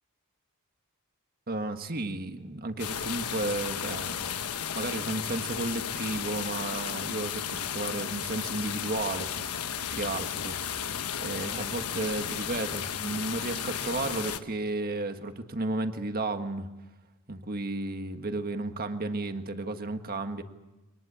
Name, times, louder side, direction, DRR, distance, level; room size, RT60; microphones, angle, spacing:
voice 1, 1.5-4.3 4.7-9.3 9.9-10.9 11.2-16.7 17.3-20.4, right 2 dB, 40° right, 7 dB, 1.6 m, -33 dB
sound 1, 2.8-14.4, left 8 dB, 85° left, 1.2 m, -34 dB
24.0 x 20.0 x 8.6 m, 1.1 s
head